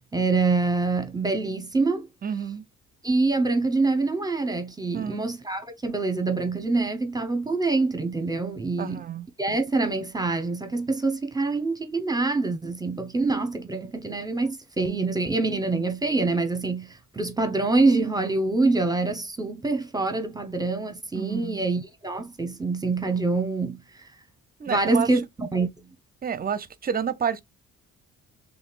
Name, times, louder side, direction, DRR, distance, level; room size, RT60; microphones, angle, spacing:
voice 1, 0.1-2.1 3.0-9.0 9.4-23.8 24.7-25.7, right 3 dB, 15° right, 1.0 m, -25 dB
voice 2, 2.2-2.6 4.9-5.3 8.8-9.3 21.1-21.7 24.6-25.1 26.2-27.4, right 7 dB, 30° right, 0.6 m, -29 dB
4.1 x 3.5 x 2.4 m
cardioid pair, 90°, 30 cm